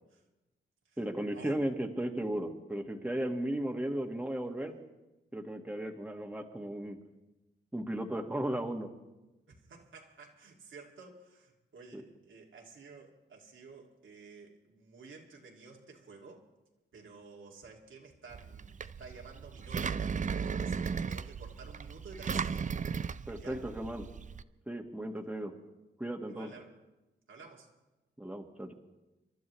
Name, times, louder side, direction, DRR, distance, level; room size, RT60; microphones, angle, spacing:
voice 1, 1.0-4.7 5.3-7.0 7.7-8.9 11.9-12.0 23.3-24.0 24.7-25.5 26.0-26.5 28.2-28.7, right 1 dB, 5° right, 2 dB, 1.5 m, -35 dB
voice 2, 9.5-16.4 16.9-23.6 25.2-25.3 26.3-26.7 27.3-27.7, right 4 dB, 90° right, -1 dB, 2.2 m, -52 dB
Engine, 18.3-24.4, right 6 dB, 40° right, 0.4 m, -36 dB
26.5 x 12.0 x 3.1 m, 1.1 s
cardioid pair, 70°, 20 cm